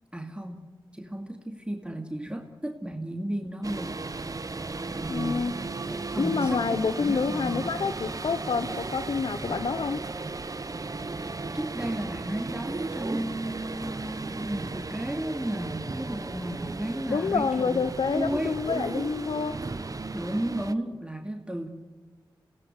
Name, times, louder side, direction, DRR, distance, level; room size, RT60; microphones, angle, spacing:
voice 1, 0.1-0.6 0.9-4.0 4.9-5.6 5.9-7.7 11.5-18.6 20.1-21.7, right 1 dB, 15° right, 3 dB, 2.5 m, -33 dB
sound 1, 3.6-20.7, right 3 dB, 45° right, 1.1 m, -35 dB
voice 2, 5.1-5.5 6.2-10.0 17.1-19.6, left 5 dB, 75° left, 11 dB, 0.9 m, -28 dB
26.5 x 18.0 x 9.7 m, 1.3 s
cardioid pair, 50°, 8 cm